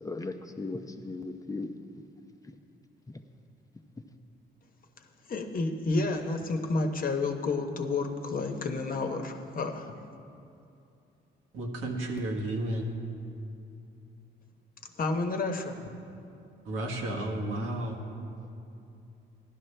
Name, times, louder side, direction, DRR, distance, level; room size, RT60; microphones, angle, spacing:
voice 1, 0.0-1.7, left 3 dB, 15° left, 6 dB, 0.7 m, -37 dB
voice 2, 5.3-10.0 15.0-15.9, left 3 dB, 45° left, 4 dB, 1.0 m, -30 dB
voice 3, 11.5-12.9 16.6-18.0, right 1 dB, 85° right, 0 dB, 1.5 m, -32 dB
15.5 x 12.0 x 3.3 m, 2.7 s
cardioid pair, 90°, 20 cm